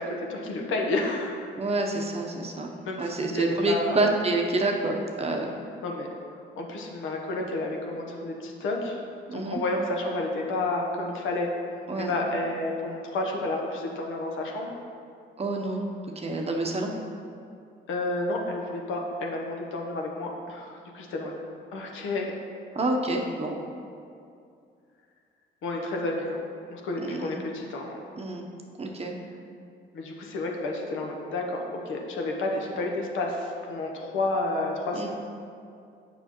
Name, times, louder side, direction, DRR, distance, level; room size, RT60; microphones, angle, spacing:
voice 1, 0.0-1.4 2.8-4.0 5.8-6.1 6.6-9.0 9.3-11.5 12.0-14.7 17.9-21.3 21.7-22.4 25.6-26.4 26.7-28.1 29.9-35.1, left 2 dB, 80° left, 0 dB, 0.9 m, -30 dB
voice 2, 1.6-5.6 9.3-9.6 11.9-12.1 15.4-15.8 16.2-16.9 22.7-23.6 27.0-27.4 28.2-28.4 28.8-29.1 34.9-35.1, right 2 dB, 30° right, 1 dB, 0.7 m, -28 dB
6.8 x 5.6 x 3.0 m, 2.4 s
cardioid pair, 90°, 20 cm